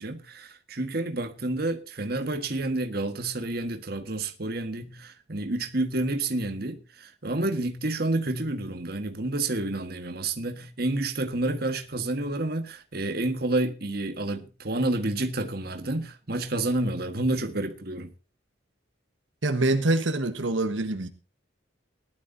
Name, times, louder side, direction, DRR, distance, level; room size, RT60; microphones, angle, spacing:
voice 1, 0.0-18.1, right 2 dB, 50° right, 1.5 m, -29 dB
voice 2, 19.4-21.1, right 2 dB, 75° right, 1.3 m, -25 dB
19.0 x 12.0 x 2.7 m
head